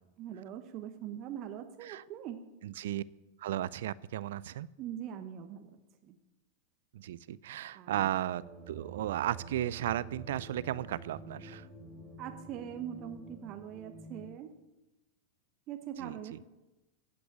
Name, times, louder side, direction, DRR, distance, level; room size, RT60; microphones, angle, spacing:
voice 1, 0.2-2.4 4.8-5.8 6.1-6.2 7.7-8.1 12.2-14.5 15.7-16.5, right 10 dB, 35° right, 6 dB, 1.1 m, -42 dB
voice 2, 2.6-3.0 3.4-4.7 6.9-11.7 16.0-16.4, right 12 dB, 55° right, 22 dB, 0.4 m, -35 dB
sound 1, 8.4-14.3, right 3 dB, 20° right, 3.5 m, -48 dB
15.0 x 6.1 x 8.7 m, 1.0 s
figure-of-eight pair, 90°, 0 cm